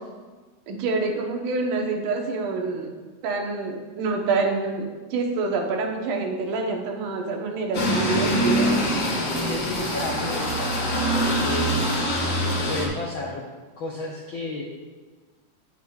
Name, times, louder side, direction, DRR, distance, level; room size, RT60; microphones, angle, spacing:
voice 1, 0.7-2.9 3.2-8.8, right 3 dB, 85° right, 1 dB, 2.7 m, -27 dB
sound 1, 7.7-12.9, equal, 40° left, 2.2 m, -24 dB
voice 2, 9.5-10.8 11.1-12.0 12.7-13.4 13.8-14.6, left 3 dB, 75° left, -2 dB, 1.1 m, -32 dB
18.0 x 6.9 x 2.4 m, 1.3 s
omnidirectional pair, 3.6 m